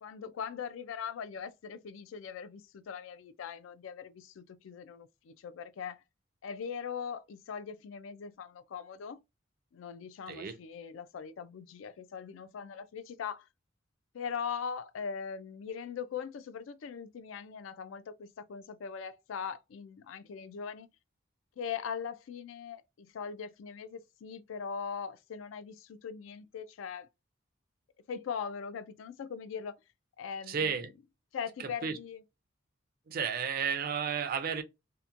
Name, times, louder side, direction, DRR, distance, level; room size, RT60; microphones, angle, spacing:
voice 1, 0.0-6.0 6.4-9.2 9.7-13.5 14.1-20.9 21.6-27.1 28.1-29.8 30.2-30.9 31.3-32.2, left 6 dB, 85° left, 0.3 m, -40 dB
voice 2, 30.5-30.9 31.8-32.0 33.1-34.6, right 6 dB, 50° right, 0.4 m, -32 dB
2.8 x 2.1 x 2.4 m
head